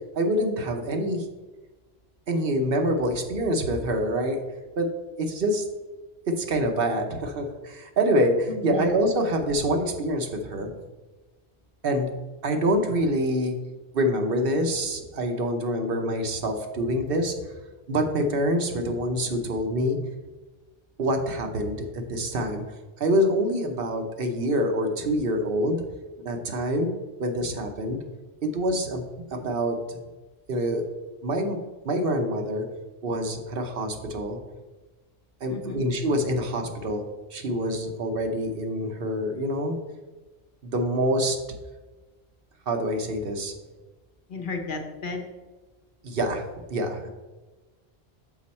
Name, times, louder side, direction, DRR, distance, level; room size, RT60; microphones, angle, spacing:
voice 1, 0.1-1.3 2.3-4.4 4.8-4.9 5.2-5.7 6.3-10.7 11.8-12.1 12.4-13.6 13.9-17.5 17.9-20.0 21.0-22.6 23.0-25.8 26.2-26.9 27.2-28.0 28.4-30.0 30.5-30.8 31.2-31.6 31.8-32.7 33.0-34.4 35.4-37.0 37.3-39.8 40.6-41.4 42.7-43.5 46.0-46.4 46.7-47.1, equal, 60° right, 4 dB, 0.9 m, -26 dB
voice 2, 8.5-8.9 35.5-35.8 44.3-45.2, left 4 dB, 55° left, 3 dB, 0.9 m, -33 dB
6.1 x 5.2 x 4.2 m, 1.2 s
omnidirectional pair, 1.1 m